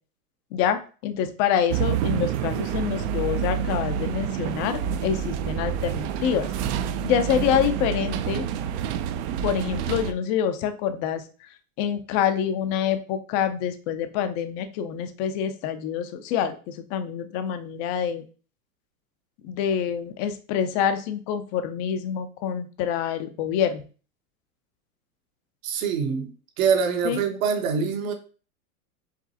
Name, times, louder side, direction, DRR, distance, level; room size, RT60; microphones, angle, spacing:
voice 1, 0.5-6.5 7.0-8.5 9.4-11.2 11.8-18.2 19.4-23.8 27.0-27.2, left 8 dB, 30° left, 0.4 m, -26 dB
sound 1, 1.7-10.1, right 9 dB, 50° right, 0.5 m, -28 dB
voice 2, 25.6-28.1, right 6 dB, 65° right, 1.2 m, -25 dB
4.9 x 3.0 x 2.7 m
hypercardioid pair, 130°, 45 cm